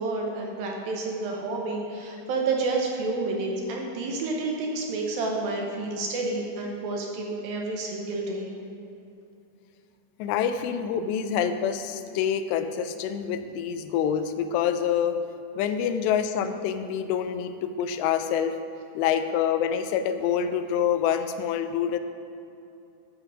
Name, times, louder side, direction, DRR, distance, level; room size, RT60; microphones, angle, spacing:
voice 1, 0.0-8.5, right 3 dB, 70° right, 0 dB, 2.5 m, -29 dB
voice 2, 10.2-15.2 15.6-18.6 19.0-22.0, left 8 dB, 85° left, 9 dB, 2.8 m, -26 dB
12.5 x 7.8 x 4.9 m, 2.7 s
omnidirectional pair, 4.9 m